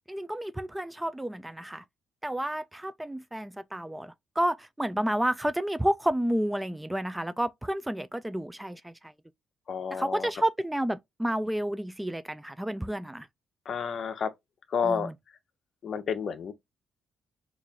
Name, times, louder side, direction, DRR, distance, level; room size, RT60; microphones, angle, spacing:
voice 1, 0.1-1.8 2.2-9.1 9.9-13.3 14.8-15.1, right 1 dB, 10° right, 0.3 m, -30 dB
voice 2, 9.7-10.3 13.7-14.3 14.7-15.1 15.8-16.5, left 6 dB, 55° left, 0.8 m, -30 dB
5.0 x 2.5 x 2.3 m
cardioid pair, 90°, 0 cm